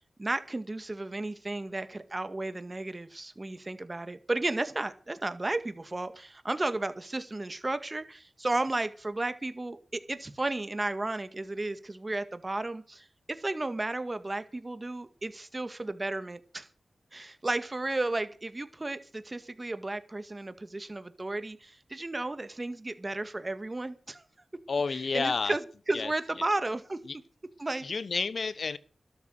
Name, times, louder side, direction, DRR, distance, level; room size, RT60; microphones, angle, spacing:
voice 1, 0.2-16.7 17.1-24.2 25.1-25.6 25.9-27.0 27.6-27.9, right 2 dB, 35° right, 11 dB, 2.0 m, -33 dB
voice 2, 24.7-25.6 25.9-26.1 26.4-26.5 27.0-27.2 27.8-28.8, left 4 dB, 70° left, 18 dB, 1.0 m, -30 dB
13.0 x 12.0 x 6.5 m, 0.40 s
cardioid pair, 45°, 0 cm